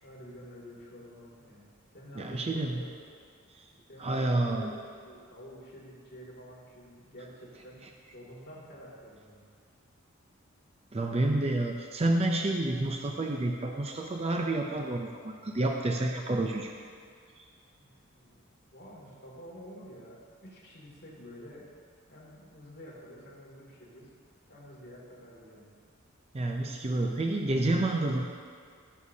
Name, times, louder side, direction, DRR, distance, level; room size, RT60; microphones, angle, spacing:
voice 1, 0.0-1.7 1.9-2.9 3.9-7.8 8.1-9.4 17.7-18.4 18.7-21.6 22.1-24.1 24.5-25.7, equal, 50° left, -5 dB, 2.5 m, -49 dB
voice 2, 2.2-2.8 4.0-4.7 10.9-16.7 17.4-17.5 26.3-28.2, right 2 dB, 30° right, 2 dB, 0.5 m, -29 dB
16.0 x 6.5 x 2.8 m, 2.2 s
head